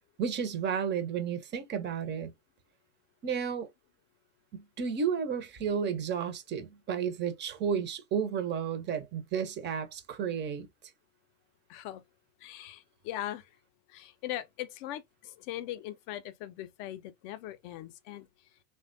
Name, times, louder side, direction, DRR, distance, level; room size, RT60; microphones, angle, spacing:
voice 1, 0.2-2.3 3.2-3.7 4.5-10.7, right 7 dB, 25° right, 0.5 m, -32 dB
voice 2, 11.7-12.0 12.4-13.5 13.9-18.3, left 13 dB, 40° left, 0.4 m, -40 dB
3.2 x 2.2 x 2.5 m
hypercardioid pair, 110°, 46 cm